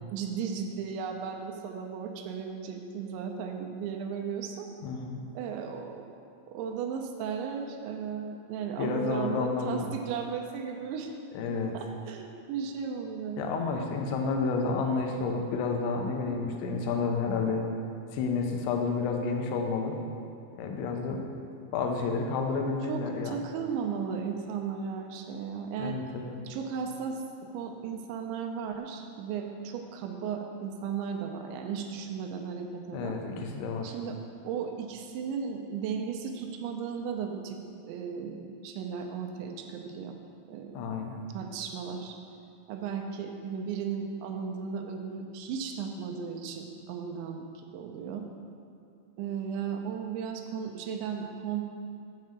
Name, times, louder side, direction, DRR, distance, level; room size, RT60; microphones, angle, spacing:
voice 1, 0.1-4.7 5.4-6.1 6.5-11.1 11.7-13.6 22.9-26.0 26.4-27.2 27.5-33.2 33.8-34.2 34.4-40.2 40.5-41.0 41.3-42.2 42.7-48.2 49.2-51.6, right 6 dB, 85° right, 3 dB, 3.0 m, -35 dB
voice 2, 4.8-5.2 8.8-9.9 11.3-11.8 13.4-17.6 18.1-20.0 20.5-21.2 21.7-23.3 25.8-26.4 32.9-33.9 40.7-41.2, left 4 dB, 90° left, 2 dB, 3.3 m, -30 dB
7.6 x 5.5 x 7.5 m, 2.6 s
omnidirectional pair, 5.2 m